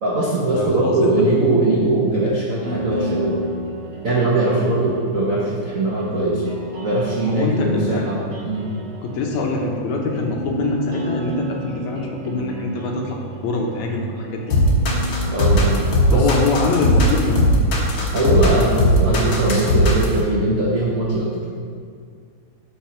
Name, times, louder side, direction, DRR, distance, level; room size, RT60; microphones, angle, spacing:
voice 1, 0.0-3.5 4.0-6.4 6.8-8.2 8.4-8.7 15.3-15.8 16.1-16.3 18.1-21.4, right 2 dB, 85° right, -6 dB, 0.7 m, -20 dB
voice 2, 0.6-1.1 7.2-8.1 9.0-14.6 16.1-17.5, left 3 dB, 75° left, 1 dB, 2.3 m, -24 dB
sound 1, 2.6-16.3, equal, 45° right, 2.4 m, -33 dB
sound 2, 14.5-20.2, left 1 dB, 55° left, 2.1 m, -17 dB
12.5 x 5.4 x 4.4 m, 2.2 s
omnidirectional pair, 3.4 m